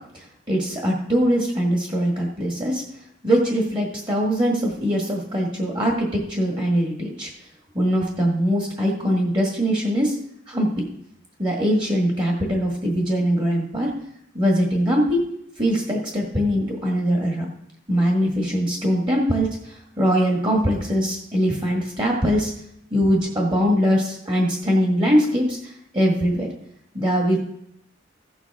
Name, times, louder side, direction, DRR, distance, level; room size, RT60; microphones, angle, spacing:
voice 1, 0.1-2.8 3.2-7.3 7.8-10.2 10.5-10.8 11.4-13.9 14.3-15.2 15.6-17.5 17.9-22.5 22.9-26.5 26.9-27.4, equal, 25° right, -1 dB, 1.6 m, -22 dB
15.5 x 7.4 x 3.5 m, 0.75 s
head